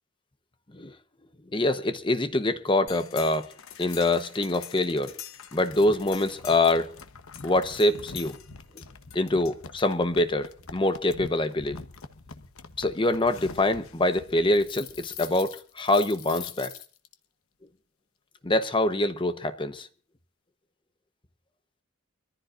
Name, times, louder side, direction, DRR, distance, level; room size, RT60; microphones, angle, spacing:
voice 1, 1.5-3.5 3.8-5.1 5.5-6.9 7.4-8.3 9.1-11.8 12.8-16.7 18.4-19.9, left 2 dB, 25° left, 0.9 m, -25 dB
sound 1, 2.9-17.1, left 6 dB, 85° left, 1.0 m, -44 dB
24.5 x 14.5 x 2.5 m
head